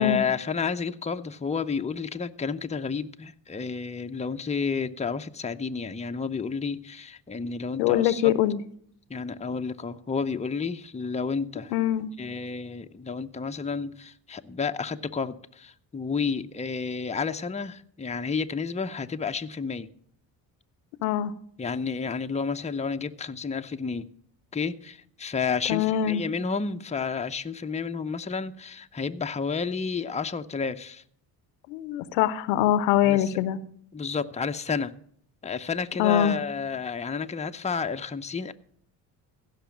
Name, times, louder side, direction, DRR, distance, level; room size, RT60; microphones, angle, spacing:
voice 1, 0.0-8.3 9.1-11.7 12.2-19.9 21.6-24.1 24.5-31.0 33.0-33.4 33.9-34.9 35.4-38.5, left 5 dB, 15° left, 0.7 m, -31 dB
voice 2, 7.8-8.6 11.7-12.1 21.0-21.3 25.7-26.2 31.7-33.6 36.0-36.4, left 11 dB, 85° left, 0.8 m, -23 dB
16.0 x 5.9 x 7.2 m
hypercardioid pair, 55°, 50 cm